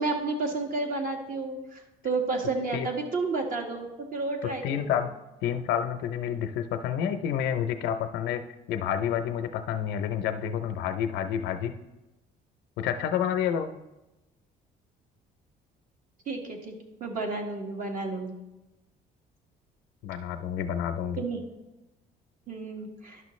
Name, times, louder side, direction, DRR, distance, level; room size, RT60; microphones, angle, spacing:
voice 1, 0.0-1.8 2.0-5.1 16.3-16.7 17.0-18.3 21.2-21.4 22.5-23.2, right 3 dB, 55° right, 2 dB, 1.6 m, -31 dB
voice 2, 4.6-5.1 5.4-8.4 8.7-11.7 12.8-13.7 20.0-21.2, left 9 dB, 85° left, 7 dB, 0.5 m, -29 dB
11.0 x 6.0 x 3.1 m, 1.0 s
cardioid pair, 110°, 17 cm